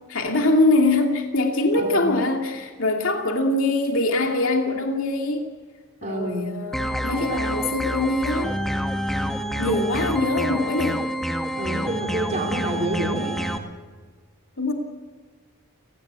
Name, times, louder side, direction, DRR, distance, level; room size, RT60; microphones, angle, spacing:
voice 1, 0.1-5.5 6.0-8.5 9.6-11.0 14.6-14.7, left 2 dB, 65° left, 2 dB, 2.6 m, -23 dB
voice 2, 1.7-2.1 6.0-6.5 7.1-7.4 9.7-9.8 11.6-13.5, right 1 dB, 35° right, 0 dB, 3.5 m, -28 dB
sound 1, 6.7-13.6, equal, ahead, 1.8 m, -27 dB
30.0 x 19.0 x 8.2 m, 1.5 s
head